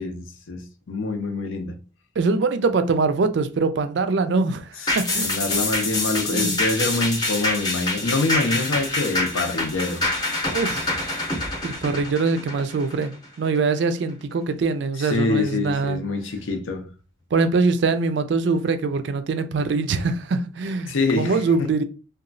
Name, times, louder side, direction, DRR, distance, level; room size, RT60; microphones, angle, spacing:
voice 1, 0.0-1.8 4.8-5.0 5.2-10.0 15.0-16.9 20.9-21.7, left 3 dB, 85° left, 0.6 m, -25 dB
voice 2, 2.2-5.4 6.3-6.5 10.5-11.1 11.6-13.1 13.4-16.0 17.3-21.8, right 4 dB, 60° right, 0.4 m, -23 dB
sound 1, 4.9-13.6 14.0-14.1, left 2 dB, 20° left, 0.7 m, -26 dB
2.9 x 2.2 x 2.5 m
head